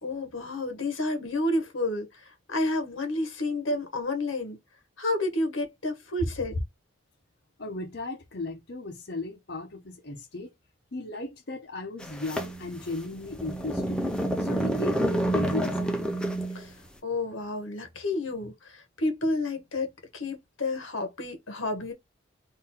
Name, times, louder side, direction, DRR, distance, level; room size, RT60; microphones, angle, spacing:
voice 1, 0.0-4.6 5.0-6.5 16.5-16.7 17.0-19.9 20.1-21.9, left 2 dB, 85° left, 1.3 m, -30 dB
voice 2, 7.6-10.5 10.9-14.0 14.4-16.1, left 2 dB, 55° left, 0.8 m, -36 dB
sound 1, 12.0-16.7, right 1 dB, 5° left, 0.6 m, -28 dB
3.8 x 2.7 x 4.2 m
head